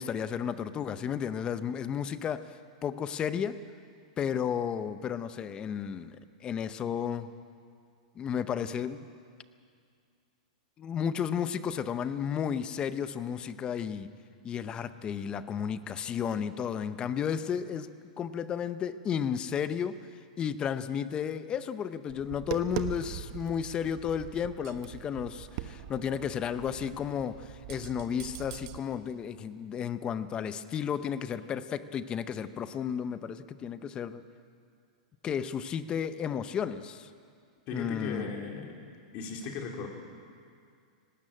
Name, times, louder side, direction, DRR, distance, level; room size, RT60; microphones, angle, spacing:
voice 1, 0.0-3.6 4.2-7.3 8.1-9.1 10.8-14.1 14.4-34.2 35.2-37.1 37.7-38.3, left 8 dB, 20° left, 13 dB, 0.7 m, -33 dB
Tap, 22.1-28.8, right 12 dB, 50° right, 1.1 m, -41 dB
voice 2, 37.7-38.9 39.1-39.9, left 5 dB, 40° left, 1 dB, 3.3 m, -37 dB
18.5 x 18.0 x 8.7 m, 2.3 s
supercardioid pair, 145°, 4 cm